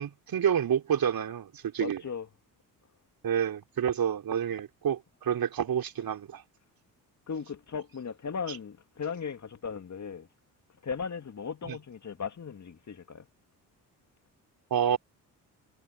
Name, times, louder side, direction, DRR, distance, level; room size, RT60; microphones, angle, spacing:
voice 1, 0.0-2.0 3.2-6.4 8.5-8.6 11.7-11.8 14.7-15.0, right 8 dB, 50° right, 3.7 m, -29 dB
voice 2, 1.8-2.3 7.3-10.3 10.8-13.3, left 6 dB, 35° left, 2.9 m, -37 dB
figure-of-eight pair, 45°, 46 cm